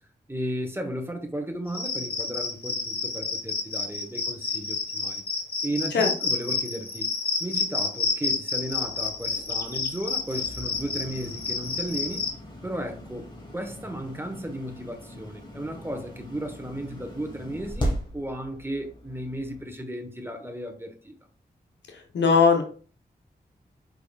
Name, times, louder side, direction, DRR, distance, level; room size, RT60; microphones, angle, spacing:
voice 1, 0.3-5.2 5.6-7.1 7.4-12.3 12.6-13.3 13.5-21.1, right 1 dB, 10° right, 1.2 m, -34 dB
Cricket, 1.7-12.3, left 4 dB, 55° left, 1.1 m, -29 dB
sound 1, 8.6-19.6, equal, 25° left, 1.7 m, -38 dB
voice 2, 21.9-22.6, left 5 dB, 85° left, 0.9 m, -20 dB
4.9 x 3.7 x 2.4 m
cardioid pair, 40°, 18 cm